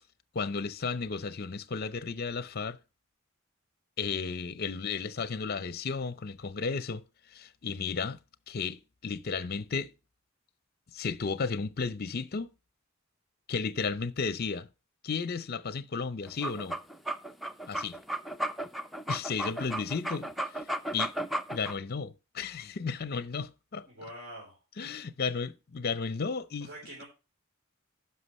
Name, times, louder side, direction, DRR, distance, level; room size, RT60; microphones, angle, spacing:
voice 1, 0.3-2.8 4.0-7.0 7.3-8.2 8.5-9.9 10.9-12.5 13.5-14.7 15.0-16.8 17.7-18.0 19.1-20.6 20.9-21.1 21.5-23.9 24.8-26.7, left 5 dB, 45° left, 0.6 m, -33 dB
sound 1, 16.3-21.7, right 1 dB, ahead, 0.5 m, -34 dB
voice 2, 23.9-24.6 26.6-27.0, right 1 dB, 50° right, 3.8 m, -45 dB
15.5 x 5.8 x 3.0 m
head